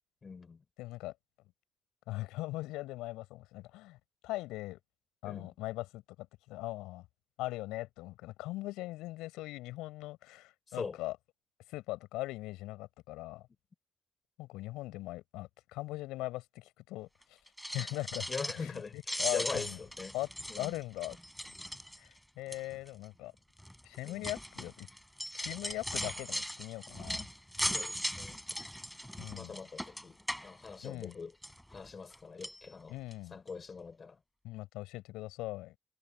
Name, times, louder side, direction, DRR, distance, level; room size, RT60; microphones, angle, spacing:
voice 1, 0.2-0.6 5.2-5.5 10.7-11.0 18.3-20.2 20.5-20.7 24.0-24.3 27.7-28.4 29.3-31.3 31.7-33.0 33.3-34.2, left 5 dB, 40° left, 3.5 m, -42 dB
voice 2, 0.8-1.1 2.1-4.0 4.2-4.8 5.2-7.1 7.4-11.2 11.7-13.5 14.4-17.4 17.7-18.3 18.6-19.8 20.1-20.3 20.5-21.2 21.4-21.5 22.0-23.3 23.8-24.9 25.3-27.3 29.2-29.6 30.8-31.2 32.9-33.4 34.4-35.8, left 18 dB, 75° left, 5.3 m, -40 dB
sound 1, 17.5-18.8 19.0-22.2 22.5-22.9 23.6-31.1 31.4-32.2 32.4-32.6 33.1-33.2 33.5-33.6, equal, ahead, 4.8 m, -39 dB
hypercardioid pair, 45°, 0 cm